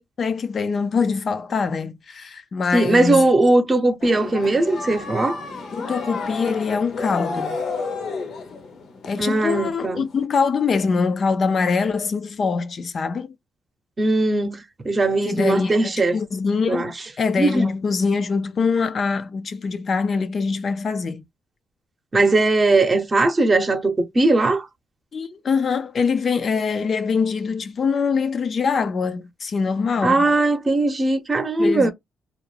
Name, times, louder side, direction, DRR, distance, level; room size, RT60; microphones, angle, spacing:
voice 1, 0.2-3.3 5.7-7.6 9.1-13.3 15.2-21.2 25.1-30.3 31.6-31.9, left 5 dB, 45° left, 0.4 m, -23 dB
voice 2, 2.7-5.4 9.2-10.1 14.0-16.2 16.7-16.9 17.4-17.7 22.1-24.7 30.0-31.9, right 2 dB, 30° right, 0.7 m, -19 dB
sound 1, 4.0-9.8 10.2-10.3, left 4 dB, 65° left, 0.8 m, -31 dB
2.4 x 2.1 x 3.2 m
cardioid pair, 90°, 0 cm